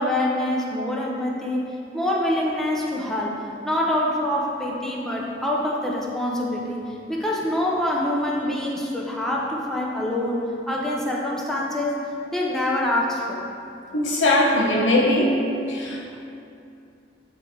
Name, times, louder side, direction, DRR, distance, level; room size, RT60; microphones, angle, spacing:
voice 1, 0.0-12.0 12.3-13.4, left 1 dB, ahead, -4 dB, 0.8 m, -25 dB
voice 2, 13.9-15.4 15.7-16.1, left 1 dB, 85° left, -1 dB, 1.1 m, -20 dB
8.2 x 3.3 x 4.8 m, 2.6 s
head